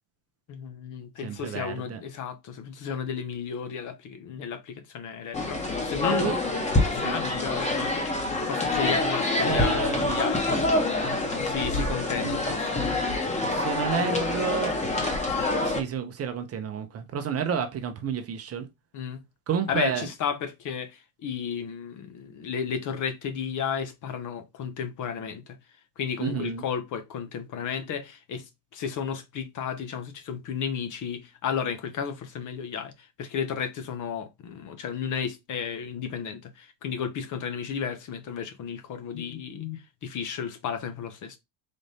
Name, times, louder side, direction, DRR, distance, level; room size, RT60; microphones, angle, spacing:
voice 1, 0.5-6.3 6.8-8.1 8.4-10.7 11.4-12.6 18.9-19.2 19.7-25.6 26.0-41.4, left 7 dB, 40° left, 0.8 m, -33 dB
voice 2, 1.2-2.0 6.2-6.4 7.0-7.2 9.4-10.1 12.2-12.4 13.5-14.8 15.6-18.7 19.5-20.1 26.2-26.6, right 7 dB, 30° right, 0.7 m, -30 dB
sound 1, 5.3-15.8, left 2 dB, 15° left, 1.1 m, -26 dB
4.1 x 2.5 x 3.3 m
supercardioid pair, 100°, 50 cm